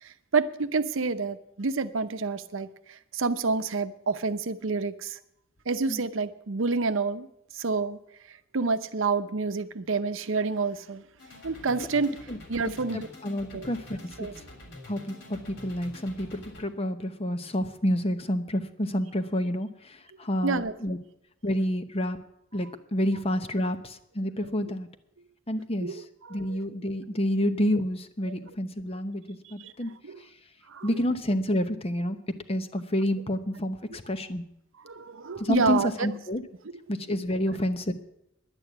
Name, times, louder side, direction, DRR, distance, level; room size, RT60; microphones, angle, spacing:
voice 1, 0.0-5.2 5.7-7.3 7.5-8.0 8.3-11.0 11.4-12.1 12.5-13.1 13.5-13.7 14.2-14.3 20.4-20.7 25.8-26.6 29.4-29.7 30.0-30.2 30.7-31.0 34.8-36.1, right 4 dB, 80° right, 11 dB, 0.7 m, -28 dB
sound 1, 11.2-16.6, left 1 dB, 65° left, 3.4 m, -47 dB
voice 2, 11.8-12.4 12.9-14.3 14.9-21.0 21.4-22.2 22.5-24.9 25.5-26.0 26.3-29.9 30.8-32.2 32.5-34.4 35.4-36.4 36.9-37.9, equal, 30° left, 10 dB, 0.9 m, -29 dB
11.0 x 8.7 x 9.1 m, 0.78 s
head